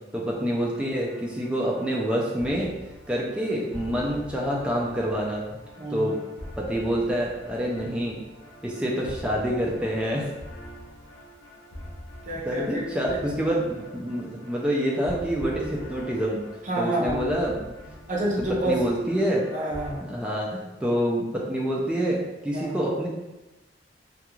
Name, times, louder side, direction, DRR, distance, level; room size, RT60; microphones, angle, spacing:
voice 1, 0.1-2.7 3.1-5.4 5.9-6.1 6.6-8.2 8.6-10.2 12.5-16.4 16.8-18.0 18.6-19.4 20.0-23.1, equal, 5° right, -4 dB, 0.3 m, -27 dB
sound 1, 0.6-20.0, equal, 80° left, 0.6 m, -44 dB
voice 2, 5.8-6.2 12.2-12.8 13.1-13.2 16.6-17.2 18.1-18.8 19.5-20.0 22.5-22.8, right 1 dB, 40° right, -3 dB, 0.6 m, -29 dB
2.3 x 2.3 x 2.9 m, 1.0 s
head